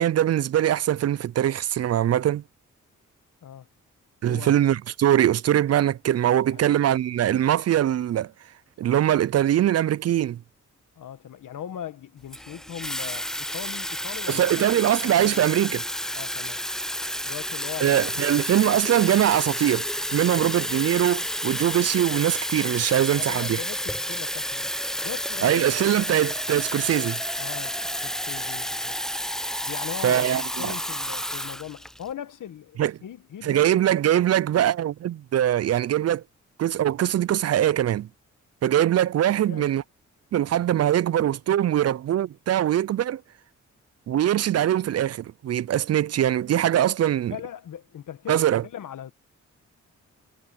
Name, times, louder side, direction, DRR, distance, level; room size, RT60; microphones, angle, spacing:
voice 1, 0.0-2.4 4.2-8.3 8.8-10.4 14.3-15.8 17.8-23.6 25.4-27.1 30.0-30.7 32.8-32.9 33.4-36.2 36.6-38.1 38.6-39.8 40.3-43.2 44.1-47.3 48.3-48.6, right 11 dB, 55° right, 0.4 m, -22 dB
voice 2, 4.3-4.6 6.5-6.7 10.9-15.5 16.1-16.6 17.2-18.3 20.3-20.5 23.0-24.7 25.0-25.7 26.1-26.2 26.8-27.0 27.4-29.0 29.7-33.8 39.3-39.7 47.3-49.1, left 9 dB, 75° left, 1.6 m, -39 dB
Water tap faucet / Fill (with liquid), 12.3-32.1, equal, ahead, 0.6 m, -30 dB
cardioid pair, 60°, 31 cm